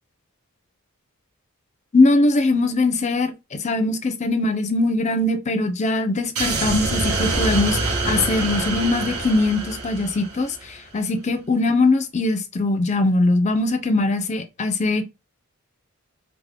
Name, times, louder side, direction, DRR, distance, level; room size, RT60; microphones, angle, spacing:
voice 1, 1.9-15.0, left 2 dB, 30° left, 0.4 m, -21 dB
sound 1, 6.4-10.7, right 3 dB, 85° right, 0.9 m, -25 dB
3.5 x 2.0 x 3.4 m
head